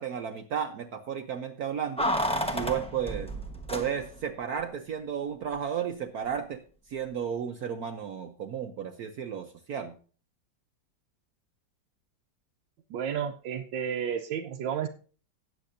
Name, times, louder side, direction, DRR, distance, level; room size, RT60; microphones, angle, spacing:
voice 1, 0.0-2.1 2.5-3.3 3.7-6.6 6.9-9.9, right 8 dB, 60° right, 6 dB, 1.1 m, -33 dB
Keys jangling, 2.0-4.3 4.6-4.7, equal, 5° left, 0.9 m, -31 dB
voice 2, 12.9-14.9, right 8 dB, 80° right, 2 dB, 1.5 m, -31 dB
18.0 x 7.6 x 2.6 m, 0.39 s
omnidirectional pair, 2.0 m